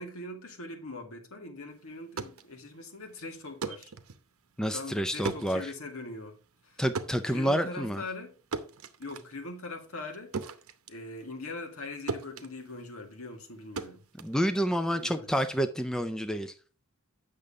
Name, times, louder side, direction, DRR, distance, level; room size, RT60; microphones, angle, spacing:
voice 1, 0.0-3.9 4.7-6.4 6.6-6.8 7.3-8.3 9.0-10.3 10.9-14.0 14.9-15.3, left 2 dB, 80° left, 2.0 m, -41 dB
sound 1, 1.9-11.8 12.1-15.0, right 4 dB, 80° right, 0.8 m, -40 dB
voice 2, 4.6-5.7 6.8-8.0 14.2-16.5, equal, 5° left, 0.4 m, -29 dB
8.6 x 6.6 x 3.6 m
head